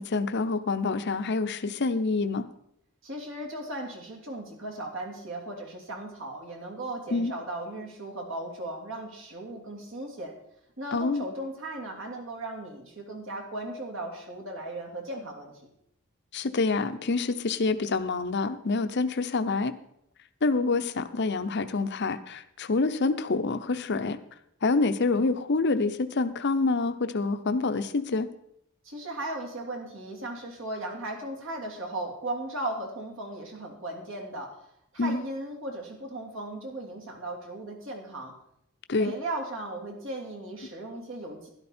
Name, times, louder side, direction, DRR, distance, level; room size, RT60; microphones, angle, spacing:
voice 1, 0.0-2.5 7.1-7.3 10.9-11.2 16.3-19.7 20.4-24.2 24.6-28.3 35.0-35.2 38.9-39.1, left 3 dB, 55° left, 10 dB, 0.7 m, -27 dB
voice 2, 3.0-10.3 10.8-15.6 28.8-34.6 34.9-38.3 39.0-41.5, right 1 dB, 65° right, 0 dB, 3.0 m, -37 dB
12.0 x 11.5 x 4.4 m, 0.75 s
head